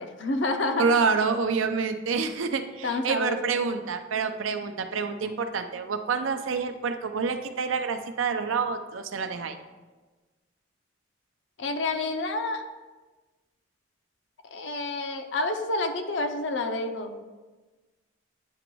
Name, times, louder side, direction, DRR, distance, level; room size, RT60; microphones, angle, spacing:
voice 1, 0.0-0.9 1.2-1.3 2.8-3.7 11.6-12.6 14.5-17.2, left 2 dB, 70° left, 6 dB, 0.6 m, -29 dB
voice 2, 0.8-9.6, right 5 dB, 90° right, 8 dB, 0.5 m, -27 dB
8.9 x 3.0 x 4.6 m, 1.3 s
head